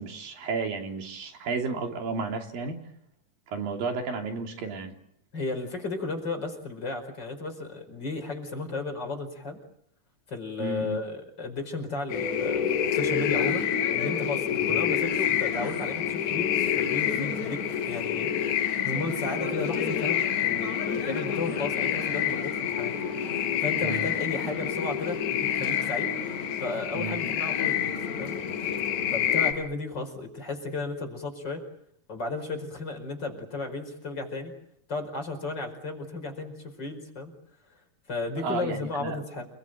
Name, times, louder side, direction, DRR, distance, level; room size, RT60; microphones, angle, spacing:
voice 1, 0.0-2.8 3.5-4.9 10.6-11.0 14.7-14.8 23.8-24.1 26.9-27.2 38.4-39.2, right 4 dB, 80° right, 4 dB, 4.7 m, -32 dB
voice 2, 5.3-9.6 10.3-12.6 12.9-22.9 23.3-26.1 26.6-28.4 29.1-31.6 32.1-34.6 34.9-37.3 38.1-39.5, left 3 dB, 30° left, 4 dB, 5.3 m, -34 dB
sound 1, 12.1-29.5, left 9 dB, 55° left, 7.6 m, -28 dB
29.5 x 20.0 x 9.1 m, 0.72 s
omnidirectional pair, 4.0 m